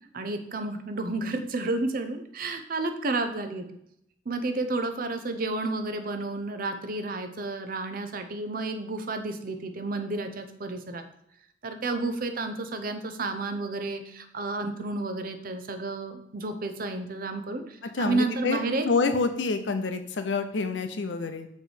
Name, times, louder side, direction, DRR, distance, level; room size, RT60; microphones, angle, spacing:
voice 1, 0.1-3.7 4.3-11.0 11.6-18.9, right 2 dB, 50° right, 8 dB, 0.6 m, -31 dB
voice 2, 17.9-18.6 18.8-21.5, left 4 dB, 85° left, 8 dB, 0.7 m, -27 dB
6.5 x 3.2 x 4.9 m, 0.76 s
head